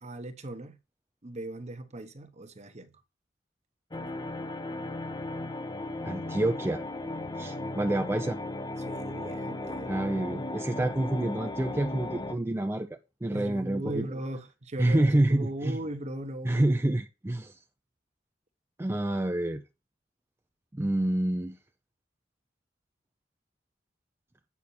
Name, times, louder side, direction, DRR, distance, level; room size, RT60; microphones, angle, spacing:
voice 1, 0.0-0.8 1.2-2.9 8.8-9.9 13.3-16.6, right 1 dB, 35° right, 1.0 m, -38 dB
sound 1, 3.9-12.3, left 2 dB, 20° left, 0.7 m, -36 dB
voice 2, 6.0-6.8 7.3-8.4 9.9-12.9 13.2-14.1 14.8-15.8 16.4-17.6 18.8-19.6 20.7-21.6, right 1 dB, 15° right, 0.5 m, -27 dB
8.5 x 5.7 x 4.2 m
head